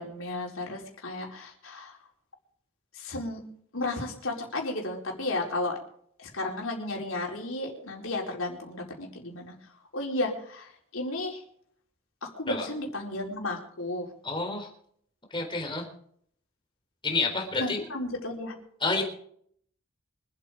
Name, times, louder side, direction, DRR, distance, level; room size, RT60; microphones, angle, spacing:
voice 1, 0.0-2.0 2.9-3.4 3.7-5.8 6.2-9.5 9.9-11.4 12.2-14.1 17.6-18.5, left 2 dB, 70° left, 0 dB, 4.5 m, -33 dB
voice 2, 14.2-14.7 15.3-15.8 17.0-17.8 18.8-19.0, left 3 dB, 25° left, 2 dB, 3.9 m, -29 dB
25.0 x 8.5 x 5.1 m, 0.63 s
head